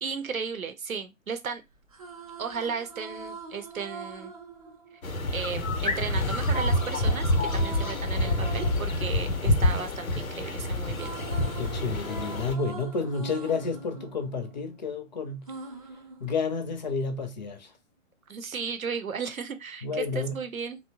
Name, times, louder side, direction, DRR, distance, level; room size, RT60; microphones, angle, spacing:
voice 1, 0.0-1.6 2.4-4.3 5.3-11.1 18.3-20.8, right 5 dB, 85° right, 0.7 m, -35 dB
sound 1, 1.7-5.8 6.4-10.4 10.7-15.0 15.5-16.9, right 4 dB, 30° right, 0.3 m, -43 dB
sound 2, 5.0-12.5, left 1 dB, 90° left, 0.7 m, -27 dB
voice 2, 11.6-15.6 16.2-17.7 19.8-20.4, left 4 dB, 35° left, 0.5 m, -31 dB
2.8 x 2.0 x 2.8 m
figure-of-eight pair, 120°, 41 cm